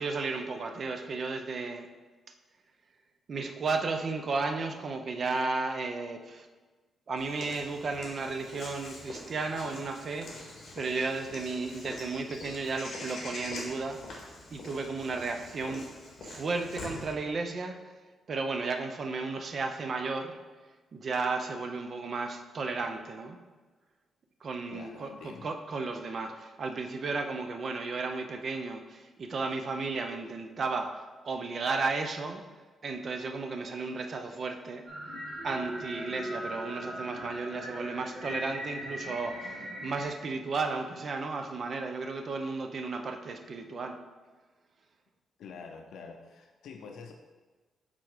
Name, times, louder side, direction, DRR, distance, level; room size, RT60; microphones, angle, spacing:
voice 1, 0.0-1.9 3.3-6.5 7.1-14.0 14.5-15.9 16.2-18.0 18.3-20.4 20.9-23.4 24.4-30.9 31.2-32.4 32.8-34.8 35.4-44.0, right 3 dB, 40° right, 5 dB, 0.5 m, -34 dB
Walk footsteps / Bird vocalization bird call bird song, 7.2-17.1, left 2 dB, 50° left, 1.8 m, -44 dB
voice 2, 24.7-25.5 45.4-47.1, left 5 dB, 80° left, 3 dB, 0.5 m, -46 dB
sound 1, 34.9-40.0, right 1 dB, 90° right, 2.0 m, -39 dB
7.8 x 3.7 x 4.8 m, 1.3 s
wide cardioid pair, 175°, 0 cm